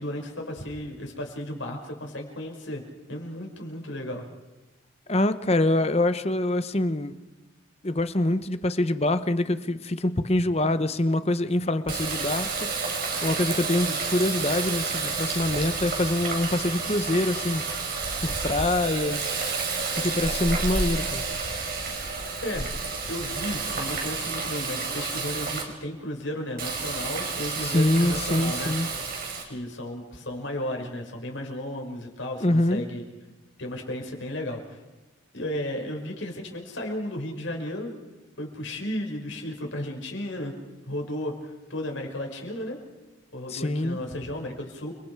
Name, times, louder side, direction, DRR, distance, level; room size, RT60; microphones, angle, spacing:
voice 1, 0.0-2.8 3.1-4.2 22.4-22.7 23.1-28.7 29.4-33.0 33.6-34.8 35.3-37.9 38.4-40.5 40.9-42.8 43.3-44.9, left 1 dB, 70° left, 2 dB, 5.7 m, -34 dB
voice 2, 5.1-7.1 7.8-12.7 13.2-17.6 18.2-19.3 20.0-21.2 27.6-28.9 32.4-32.8 43.5-44.0, left 1 dB, 30° left, 11 dB, 1.0 m, -25 dB
Water tap faucet, 11.9-25.6 26.6-29.4, right 4 dB, 45° right, 4.8 m, -30 dB
29.5 x 26.0 x 4.8 m, 1.1 s
head